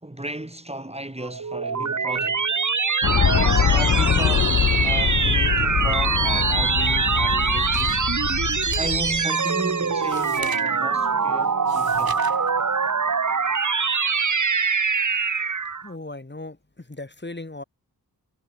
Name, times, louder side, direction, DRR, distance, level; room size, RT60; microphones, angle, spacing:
voice 1, 0.0-2.5 3.3-8.1 8.8-12.2, right 1 dB, 15° right, 3.6 m, -34 dB
sound 1, 1.2-15.9, right 5 dB, 50° right, 1.7 m, -23 dB
sound 2, 3.0-9.2, left 9 dB, 45° left, 0.5 m, -23 dB
sound 3, 6.9-12.5, right 5 dB, 65° right, 3.2 m, -43 dB
voice 2, 15.8-17.6, left 2 dB, 25° left, 4.5 m, -37 dB
cardioid pair, 55°, 38 cm